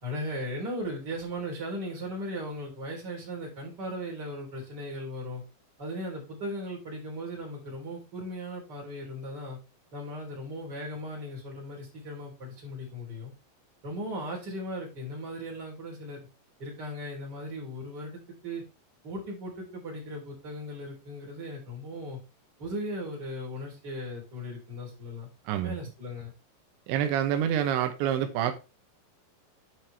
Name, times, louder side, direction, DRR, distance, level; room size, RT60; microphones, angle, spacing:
voice 1, 0.0-5.4 5.8-9.6 9.9-13.3 13.8-16.2 16.6-18.6 19.0-22.2 22.6-25.3 25.6-26.3, equal, 25° right, 3.6 m, -37 dB
voice 2, 25.5-25.8 26.9-28.5, right 10 dB, 85° right, 3.3 m, -27 dB
9.5 x 5.9 x 3.3 m
omnidirectional pair, 5.1 m